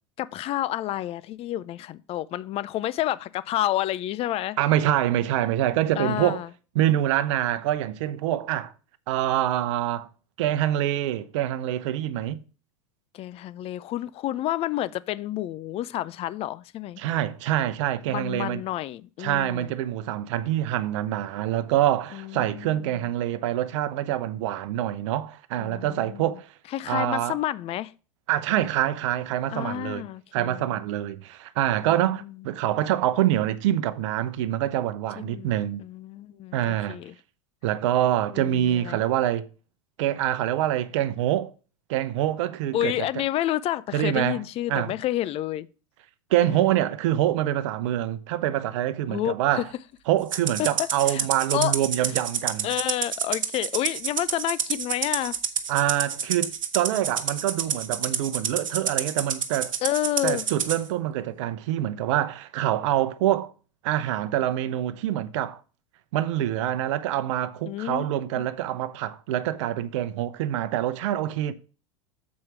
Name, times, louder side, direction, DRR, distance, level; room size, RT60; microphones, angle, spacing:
voice 1, 0.2-4.6 6.0-6.5 13.1-17.0 18.1-19.7 22.1-23.1 25.6-26.3 26.7-27.9 29.5-30.8 31.9-32.3 35.2-35.5 35.8-37.1 38.3-39.0 42.7-45.7 46.4-46.8 49.1-49.6 50.6-51.3 51.5-51.7 52.6-55.4 59.8-60.4 67.7-68.1 68.4-68.5, left 13 dB, 35° left, 0.5 m, -30 dB
voice 2, 4.6-6.4 6.7-8.7 9.1-10.1 10.4-12.4 17.0-18.6 19.2-26.5 26.9-27.4 28.3-30.0 30.3-35.8 36.5-37.0 37.6-39.5 40.0-41.5 41.9-43.1 43.9-44.4 44.7-44.9 46.3-49.7 50.1-52.7 55.7-59.7 60.2-63.5 63.8-65.6 66.1-71.5, right 12 dB, 65° right, 0.8 m, -25 dB
Rattle (instrument), 50.3-60.8, right 7 dB, 90° right, 1.0 m, -29 dB
7.4 x 4.6 x 5.8 m
hypercardioid pair, 100°, 17 cm